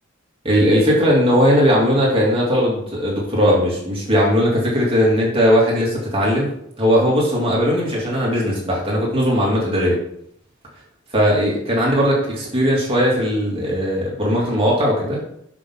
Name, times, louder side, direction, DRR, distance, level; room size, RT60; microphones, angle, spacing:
voice 1, 0.4-10.0 11.1-15.2, equal, 30° right, -4 dB, 3.1 m, -18 dB
11.0 x 6.1 x 4.0 m, 0.70 s
head